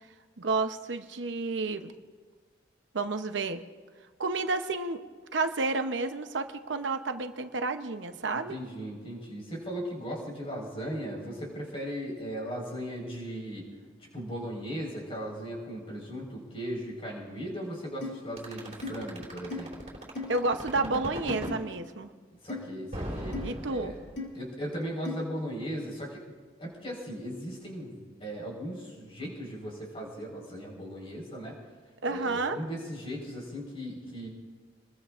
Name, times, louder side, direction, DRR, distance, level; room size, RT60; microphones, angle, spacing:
voice 1, 0.4-1.9 2.9-3.6 4.2-5.0 5.3-8.6 20.3-22.1 23.4-23.9 32.0-32.6, right 3 dB, 80° right, 8 dB, 0.8 m, -30 dB
voice 2, 8.3-13.7 14.1-19.7 22.4-23.4 23.7-23.9 24.3-26.2 26.6-31.6 32.0-34.3, equal, 30° left, -2 dB, 4.4 m, -37 dB
sound 1, 18.0-18.2 18.8-18.9 19.5-19.6 20.2-20.4 21.3-21.5 22.5-22.7 23.3-23.5 24.2-24.3 25.1-25.2, left 3 dB, 70° left, 2.2 m, -36 dB
sound 2, 18.4-21.6 22.9-24.3, right 1 dB, 35° right, 3.8 m, -37 dB
27.0 x 21.0 x 2.5 m, 1.5 s
head